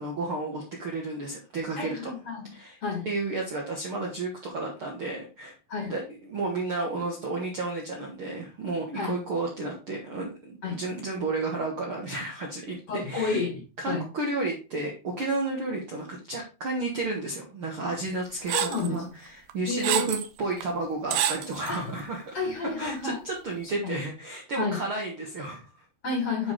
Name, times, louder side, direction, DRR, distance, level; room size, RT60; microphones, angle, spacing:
voice 1, 0.0-2.1 2.5-2.8 3.0-5.5 5.9-6.0 6.3-13.4 13.8-22.4 22.8-25.8, right 2 dB, 55° right, -1 dB, 1.5 m, -32 dB
voice 2, 1.8-2.5 2.8-3.1 5.7-5.9 8.9-9.1 10.6-10.8 12.9-14.1 17.8-18.0 18.5-19.0 19.7-20.1 21.7-22.0 22.3-23.2 23.8-23.9 24.6-24.8 26.0-26.5, left 4 dB, 45° left, 1 dB, 2.4 m, -31 dB
sound 1, 18.5-18.9 19.5-20.3 20.6-20.7 21.1-21.8, right 10 dB, 80° right, 1.9 m, -27 dB
9.4 x 4.9 x 3.8 m, 0.32 s
omnidirectional pair, 4.4 m